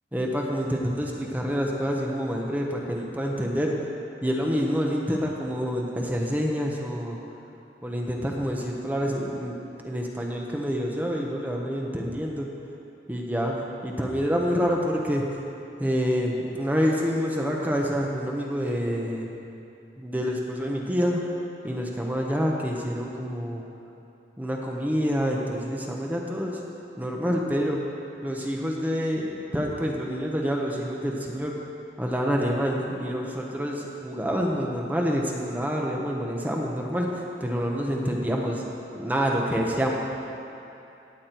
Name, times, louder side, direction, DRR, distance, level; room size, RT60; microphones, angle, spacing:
voice 1, 0.1-3.8 4.2-7.2 7.8-9.6 9.8-12.5 13.1-15.3 15.8-19.3 20.0-21.2 21.6-23.6 24.4-26.6 27.0-27.8 28.2-31.6 32.0-39.9, equal, 10° right, -1 dB, 1.0 m, -27 dB
17.0 x 8.6 x 4.5 m, 2.8 s
head